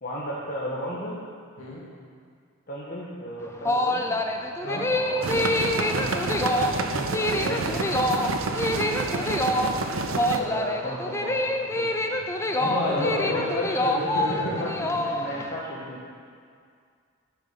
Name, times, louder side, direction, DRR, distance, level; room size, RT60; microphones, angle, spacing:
voice 1, 0.0-1.1 2.7-4.1 4.9-5.5 5.8-8.3 9.0-11.9 12.9-13.9 14.4-14.7 15.0-16.0, equal, 45° left, -6 dB, 1.3 m, -34 dB
sound 1, 3.4-15.5, left 1 dB, 15° left, 0.5 m, -26 dB
sound 2, 5.2-10.4, right 3 dB, 70° right, 0.7 m, -29 dB
voice 2, 12.6-13.4 13.7-14.7, left 1 dB, 75° left, -6 dB, 2.8 m, -30 dB
9.9 x 6.9 x 5.9 m, 2.1 s
head